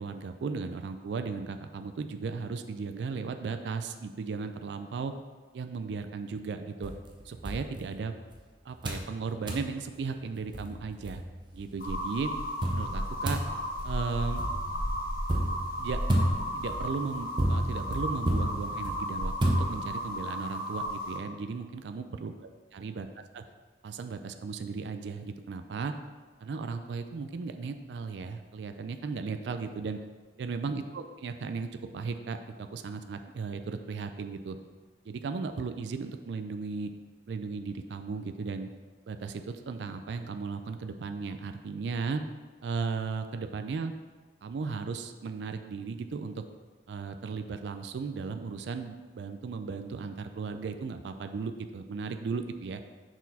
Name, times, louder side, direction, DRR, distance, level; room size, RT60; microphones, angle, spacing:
voice 1, 0.0-5.1 5.5-6.9 7.2-8.1 8.6-11.2 11.5-12.3 12.7-13.4 13.8-14.4 15.8-16.0 16.5-22.3 22.7-23.1 23.3-23.4 23.8-25.9 26.4-30.0 30.4-31.7 31.9-34.6 35.1-36.9 37.3-38.7 39.1-42.2 42.6-43.9 44.4-46.4 46.9-52.8, right 4 dB, 75° right, 7 dB, 0.4 m, -36 dB
sound 1, 6.8-8.4 8.8-9.1 9.5-9.7 10.2-10.3 10.5-11.6 12.6-20.2, right 1 dB, 25° right, 0.7 m, -32 dB
sound 2, 11.8-21.2, equal, 55° left, 0.9 m, -34 dB
6.1 x 4.4 x 4.1 m, 1.4 s
head